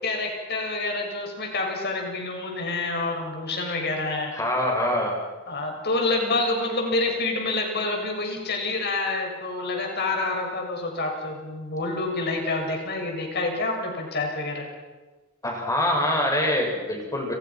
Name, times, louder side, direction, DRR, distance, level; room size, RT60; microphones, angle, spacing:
voice 1, 0.0-4.3 5.5-14.7, left 2 dB, 50° left, 2 dB, 7.0 m, -27 dB
voice 2, 4.3-5.2 15.4-17.3, left 1 dB, 15° left, 1 dB, 6.7 m, -24 dB
29.5 x 29.0 x 6.1 m, 1.2 s
head